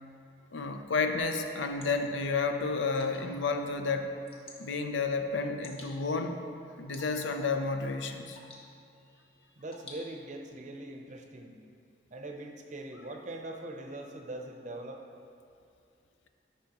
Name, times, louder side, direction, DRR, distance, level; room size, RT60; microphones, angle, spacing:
voice 1, 0.5-4.1 4.6-6.4 6.8-8.4, left 4 dB, 80° left, 6 dB, 0.5 m, -31 dB
Water / Drip, 1.1-10.5, left 2 dB, 30° left, 0.9 m, -55 dB
voice 2, 9.6-11.6 12.1-15.0, right 1 dB, 40° right, 3 dB, 0.6 m, -42 dB
11.5 x 5.5 x 2.9 m, 2.4 s
head